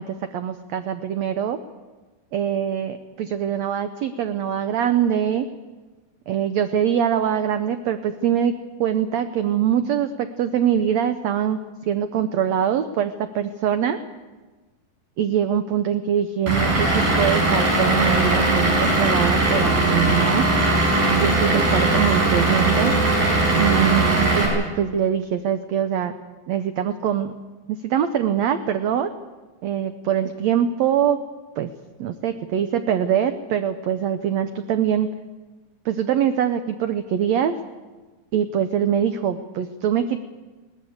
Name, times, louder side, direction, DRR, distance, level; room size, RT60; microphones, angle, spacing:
voice 1, 0.0-1.6 2.3-5.5 6.3-8.5 8.8-11.6 11.9-14.0 15.2-20.5 21.1-22.9 23.5-26.1 26.5-27.3 27.7-29.1 29.6-31.2 31.6-31.7 32.0-35.1 35.8-37.5 38.3-40.2, right 9 dB, 80° right, 9 dB, 1.5 m, -23 dB
Vehicle / Engine, 16.5-24.5, right 2 dB, 55° right, 6.6 m, -19 dB
21.0 x 18.5 x 8.1 m, 1.3 s
omnidirectional pair, 4.2 m